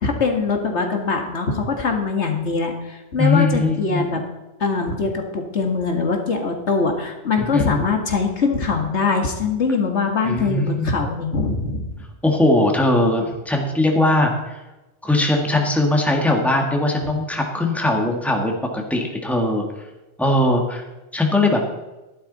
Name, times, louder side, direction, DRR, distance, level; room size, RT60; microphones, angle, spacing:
voice 1, 0.0-4.2 4.6-11.9, left 4 dB, 70° left, 3 dB, 2.0 m, -22 dB
voice 2, 3.2-4.1 7.4-7.7 10.2-10.9 12.2-14.5 15.0-19.6 20.2-20.8 21.1-21.6, left 2 dB, ahead, 1 dB, 1.8 m, -20 dB
13.5 x 11.5 x 4.1 m, 1.1 s
omnidirectional pair, 1.2 m